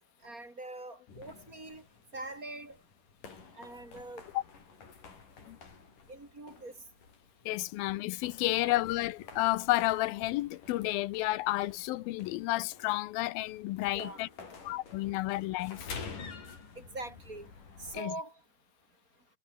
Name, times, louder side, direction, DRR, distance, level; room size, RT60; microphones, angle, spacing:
voice 1, 0.2-1.8 2.1-2.8 3.6-4.2 6.1-6.8 8.6-8.7 13.9-14.2 16.8-17.5 17.8-18.3, right 2 dB, 25° right, 4.3 m, -43 dB
sound 1, 1.1-18.0, left 5 dB, 65° left, 6.5 m, -50 dB
voice 2, 7.5-14.3 14.6-15.9 17.9-18.1, left 17 dB, 85° left, 2.6 m, -31 dB
omnidirectional pair, 4.1 m